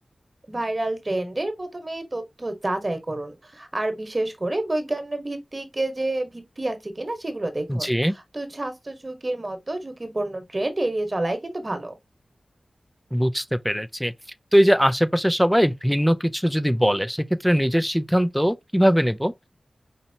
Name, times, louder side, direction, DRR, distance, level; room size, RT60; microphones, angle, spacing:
voice 1, 0.5-8.0 8.3-11.9, right 2 dB, 35° right, 1.2 m, -29 dB
voice 2, 7.7-8.1 13.1-14.1 14.5-19.3, equal, ahead, 0.4 m, -21 dB
5.3 x 2.8 x 2.7 m
cardioid pair, 50°, 0 cm